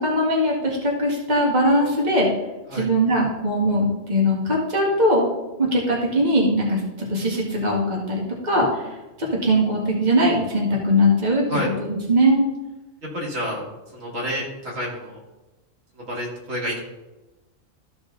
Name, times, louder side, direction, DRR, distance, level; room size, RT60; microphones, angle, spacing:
voice 1, 0.0-2.3 2.7-5.3 5.6-6.8 7.1-8.8 9.2-11.4 11.8-12.4, equal, 35° right, -3 dB, 2.0 m, -20 dB
voice 2, 13.0-13.6 13.9-15.2 16.0-16.8, equal, 80° right, -4 dB, 2.8 m, -29 dB
14.0 x 4.8 x 3.9 m, 1.1 s
omnidirectional pair, 1.3 m